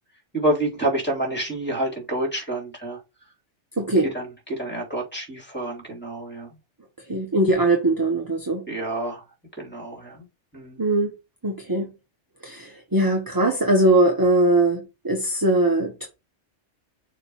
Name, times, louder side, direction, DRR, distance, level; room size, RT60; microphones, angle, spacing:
voice 1, 0.3-3.0 4.1-6.5 8.7-9.2 9.6-10.2 10.5-10.8, right 1 dB, 10° left, 3.0 m, -28 dB
voice 2, 3.8-4.1 7.1-8.6 10.8-11.1 11.4-11.9 12.4-16.1, right 2 dB, 20° right, 1.1 m, -21 dB
6.9 x 3.2 x 5.5 m
omnidirectional pair, 1.3 m